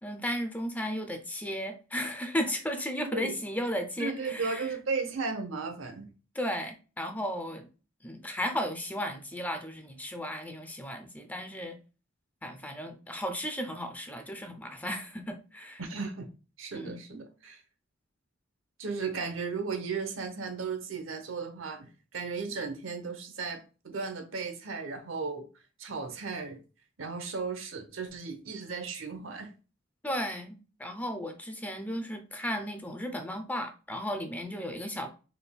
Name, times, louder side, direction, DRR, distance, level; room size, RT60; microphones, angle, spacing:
voice 1, 0.0-4.7 6.3-7.7 8.0-11.8 12.4-15.8 16.7-17.0 30.0-35.1, equal, 10° left, 0.5 m, -35 dB
voice 2, 3.0-3.4 4.0-6.1 15.8-16.3 16.6-17.6 18.8-25.5 25.8-26.6 27.0-29.5, right 4 dB, 85° right, 0.8 m, -35 dB
4.2 x 3.5 x 2.2 m
head